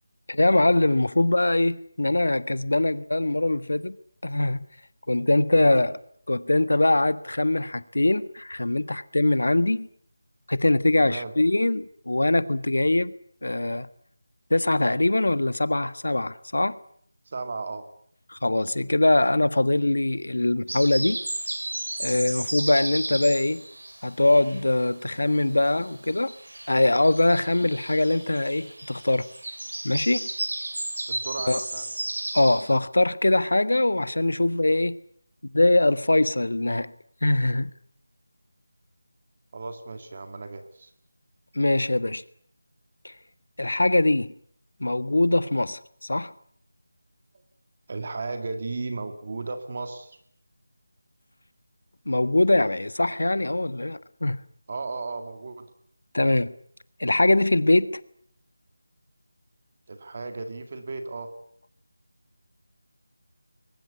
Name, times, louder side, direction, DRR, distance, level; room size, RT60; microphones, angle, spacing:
voice 1, 0.3-4.0 4.2-4.7 5.1-5.9 6.3-9.9 10.5-13.1 13.4-13.9 14.5-16.8 18.3-21.2 22.0-23.6 24.0-26.3 26.7-29.3 29.8-30.3 31.5-31.6 32.3-35.0 35.5-36.9 37.2-37.7 41.5-42.2 43.0-43.1 43.6-44.3 44.8-45.8 46.1-46.3 52.1-54.4 56.1-56.5 57.0-58.0, left 2 dB, 85° left, 1.4 m, -22 dB
voice 2, 11.0-11.3 17.3-17.8 31.1-31.9 39.5-40.9 47.9-50.2 54.7-55.7 59.9-61.3, right 3 dB, 30° right, 2.1 m, -35 dB
sound 1, 20.7-25.0 25.3-32.7, right 1 dB, 80° right, 6.4 m, -34 dB
22.0 x 20.0 x 9.7 m
figure-of-eight pair, 175°, 0 cm